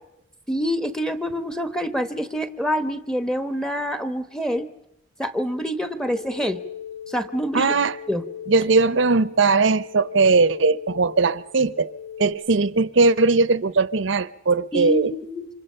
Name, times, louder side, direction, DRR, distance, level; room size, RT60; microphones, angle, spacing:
voice 1, 0.5-4.7 5.2-6.6 7.1-7.7 8.1-8.2 14.7-15.5, equal, 5° left, 1.0 m, -26 dB
sound 1, 6.1-12.3, left 8 dB, 75° left, 7.4 m, -38 dB
voice 2, 7.5-8.0 8.5-11.9 12.2-15.1, right 3 dB, 70° right, 0.8 m, -19 dB
28.0 x 25.5 x 5.6 m
head